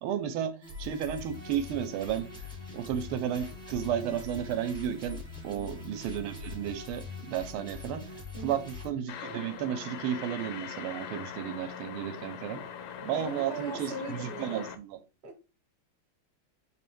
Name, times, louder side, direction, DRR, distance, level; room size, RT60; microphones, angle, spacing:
voice 1, 0.0-2.3 2.7-12.6 13.0-15.0, right 9 dB, 85° right, 1.5 m, -33 dB
sound 1, 0.6-8.9, left 4 dB, 5° left, 0.5 m, -43 dB
voice 2, 8.3-8.7 13.1-14.6 15.2-15.4, right 2 dB, 45° right, 0.7 m, -40 dB
sound 2, 9.1-14.8, left 8 dB, 75° left, 1.2 m, -42 dB
5.0 x 2.5 x 3.5 m
omnidirectional pair, 2.4 m